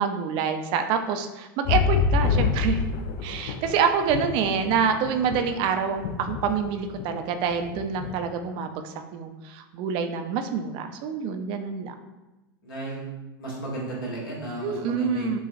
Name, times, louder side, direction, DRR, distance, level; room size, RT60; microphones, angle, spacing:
voice 1, 0.0-2.8 3.2-11.9 14.6-15.4, right 6 dB, 45° right, 7 dB, 0.4 m, -27 dB
sound 1, 1.7-5.7 6.0-7.1 7.3-8.1 8.5-8.6, left 6 dB, 50° left, 0.4 m, -27 dB
voice 2, 12.6-13.1 13.4-15.4, right 2 dB, 70° left, -3 dB, 1.4 m, -34 dB
6.9 x 2.3 x 2.5 m, 1.0 s
figure-of-eight pair, 85°, 12 cm